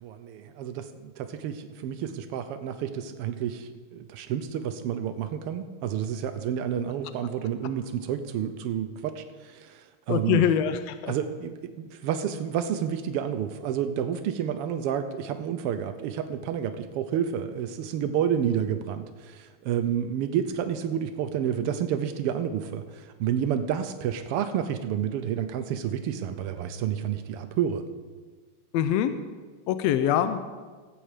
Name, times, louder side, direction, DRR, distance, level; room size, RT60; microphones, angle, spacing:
voice 1, 0.0-10.4 11.1-27.8, right 9 dB, 85° right, 9 dB, 1.3 m, -30 dB
voice 2, 10.1-11.1 28.7-29.1 29.7-30.4, left 9 dB, 80° left, 10 dB, 1.6 m, -24 dB
15.5 x 8.3 x 5.0 m, 1.4 s
omnidirectional pair, 3.4 m